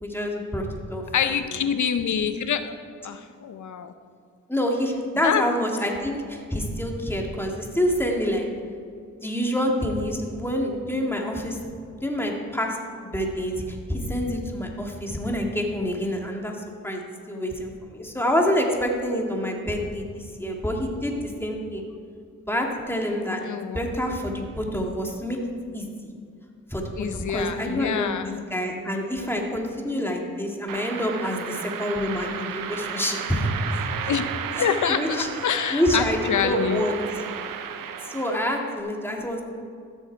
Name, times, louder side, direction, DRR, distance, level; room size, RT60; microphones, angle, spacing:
voice 1, 0.0-1.5 4.5-8.5 9.2-11.6 12.0-17.0 17.3-21.8 22.5-23.4 23.7-25.4 25.7-25.9 26.7-33.9 34.6-35.3 35.7-37.0 38.0-39.4, equal, 5° left, 0 dB, 2.2 m, -27 dB
voice 2, 1.1-2.8 3.0-3.9 5.2-5.4 23.4-23.8 27.0-28.3 34.1-36.9, left 7 dB, 60° left, 10 dB, 0.8 m, -26 dB
sound 1, 30.7-38.8, right 8 dB, 75° right, 0.8 m, -34 dB
14.0 x 6.5 x 4.6 m, 2.2 s
supercardioid pair, 45°, 33 cm